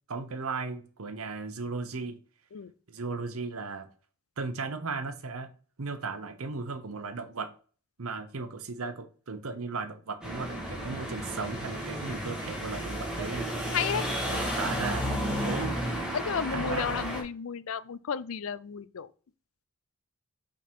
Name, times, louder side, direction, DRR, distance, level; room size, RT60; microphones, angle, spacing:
voice 1, 0.1-2.2 2.9-3.9 4.4-5.5 5.8-7.5 8.0-13.5 14.3-15.1 15.4-15.8 16.5-16.9, right 4 dB, 75° right, 0.9 m, -36 dB
sound 1, 10.2-17.2, equal, 5° right, 1.8 m, -32 dB
voice 2, 13.7-14.1 16.1-19.1, left 7 dB, 65° left, 0.4 m, -32 dB
5.8 x 3.8 x 4.5 m
head